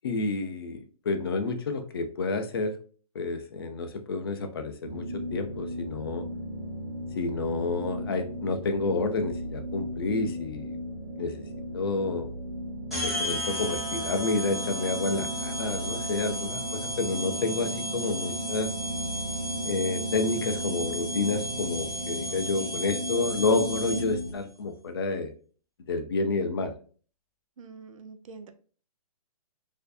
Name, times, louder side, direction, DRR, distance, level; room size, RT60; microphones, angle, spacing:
voice 1, 0.0-2.8 3.1-6.3 7.2-10.8 11.2-11.4 11.7-12.3 13.0-18.7 19.6-25.3 25.9-26.8, left 3 dB, 40° left, 0.5 m, -29 dB
sound 1, 4.8-24.3, equal, 40° right, 0.9 m, -36 dB
sound 2, 12.9-24.3, equal, ahead, 1.0 m, -34 dB
voice 2, 22.2-22.7 27.6-28.5, right 4 dB, 60° right, 0.5 m, -47 dB
4.3 x 2.6 x 2.4 m
hypercardioid pair, 170°, 20 cm